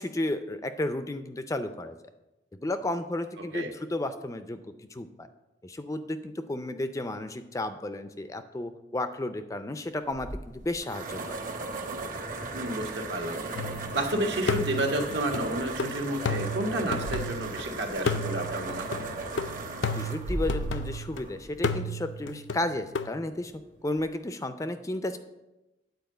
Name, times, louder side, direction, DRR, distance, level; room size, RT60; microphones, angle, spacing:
voice 1, 0.0-2.0 2.5-4.6 4.9-5.3 5.6-11.4 20.0-23.5 23.8-25.2, left 1 dB, 15° left, 10 dB, 0.4 m, -33 dB
sound 1, 10.1-21.9, right 2 dB, 50° right, 1.1 m, -36 dB
voice 2, 12.5-13.4 13.9-19.1, right 1 dB, 70° right, 2 dB, 1.4 m, -30 dB
sound 2, 13.6-14.1 14.5-17.6 18.1-21.2 21.6-23.1, left 2 dB, 85° left, 0.5 m, -33 dB
9.3 x 4.6 x 7.7 m, 1.0 s
head